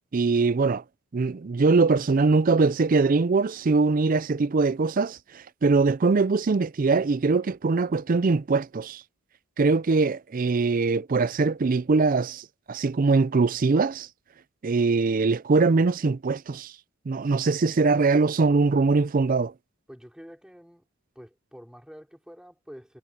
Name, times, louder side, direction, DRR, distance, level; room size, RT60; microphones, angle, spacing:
voice 1, 0.1-0.8 1.1-9.0 9.6-14.1 14.6-16.7 17.1-19.5, right 4 dB, 40° right, 0.4 m, -22 dB
voice 2, 19.9-20.9 21.1-23.0, equal, 5° right, 4.6 m, -47 dB
head